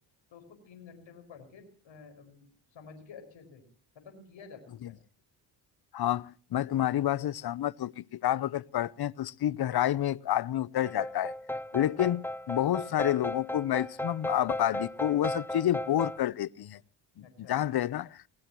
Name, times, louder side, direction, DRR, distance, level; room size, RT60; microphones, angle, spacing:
voice 1, 0.3-3.6 4.0-5.0 17.2-17.6, left 5 dB, 65° left, 5.6 m, -51 dB
voice 2, 5.9-11.3 11.7-16.8 17.2-18.2, left 12 dB, 50° left, 0.7 m, -29 dB
sound 1, 10.8-16.2, left 1 dB, 5° left, 0.7 m, -36 dB
22.5 x 19.5 x 3.0 m
supercardioid pair, 65°, 49 cm